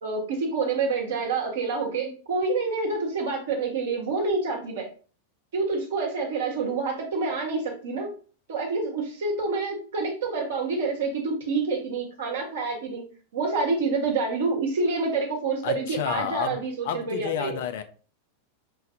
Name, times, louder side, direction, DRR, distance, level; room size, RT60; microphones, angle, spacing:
voice 1, 0.0-4.9 5.5-8.1 8.5-13.0 13.3-17.5, right 4 dB, 60° right, 1.2 m, -27 dB
voice 2, 15.6-16.6 16.8-17.8, left 9 dB, 55° left, 0.4 m, -30 dB
5.6 x 2.6 x 2.6 m
figure-of-eight pair, 90°, 0 cm